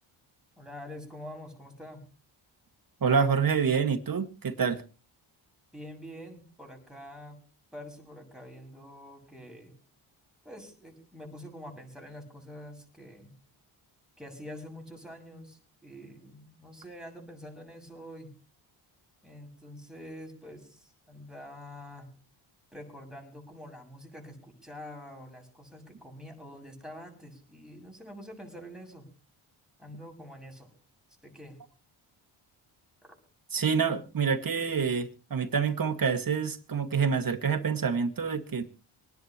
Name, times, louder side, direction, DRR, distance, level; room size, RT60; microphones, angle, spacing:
voice 1, 0.6-2.0 5.7-7.4 7.7-9.7 10.4-13.3 14.2-18.3 19.2-22.1 22.7-29.1 29.8-30.7 31.2-31.6 33.0-33.2, equal, ahead, 1 dB, 7.1 m, -46 dB
voice 2, 3.0-4.8 33.5-38.6, right 6 dB, 45° right, 8 dB, 2.0 m, -27 dB
25.5 x 10.5 x 3.0 m, 0.36 s
cardioid pair, 70°, 49 cm